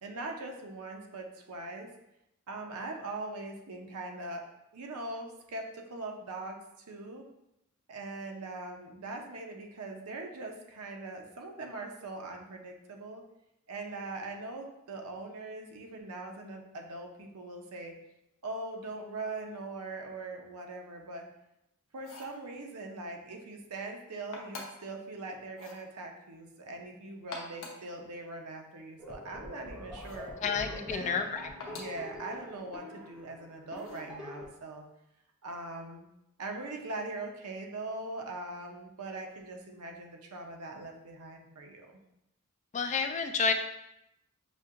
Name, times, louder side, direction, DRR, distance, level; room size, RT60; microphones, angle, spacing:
voice 1, 0.0-1.9 2.5-6.6 6.9-7.2 7.9-13.2 13.7-17.9 18.4-21.3 21.9-30.3 30.7-31.1 31.7-34.8 35.4-36.0 36.4-42.0, right 2 dB, 80° right, 2 dB, 0.7 m, -41 dB
sound 1, 21.9-22.4 24.3-24.9 25.5-25.8 27.1-27.9 30.0-30.3 31.6-32.0 33.7-34.1, left 3 dB, 65° left, 0.8 m, -45 dB
sound 2, 29.0-34.5, left 1 dB, 5° right, 0.6 m, -45 dB
voice 2, 30.4-31.4 31.7-31.8 42.7-43.5, left 5 dB, 30° left, 6 dB, 0.3 m, -30 dB
6.1 x 2.7 x 2.5 m, 0.86 s
head